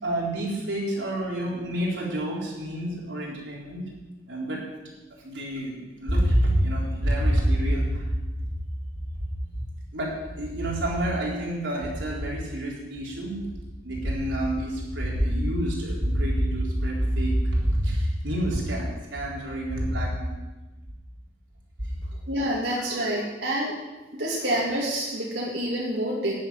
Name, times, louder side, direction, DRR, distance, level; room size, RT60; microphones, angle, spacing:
voice 1, 0.0-3.8 4.3-4.6 5.2-8.1 8.4-8.5 9.9-13.4 13.8-20.4 21.8-22.0, equal, 90° right, -4 dB, 4.1 m, -27 dB
voice 2, 22.3-23.7 24.1-26.3, right 1 dB, 70° right, -5 dB, 2.4 m, -27 dB
10.5 x 7.2 x 9.2 m, 1.2 s
head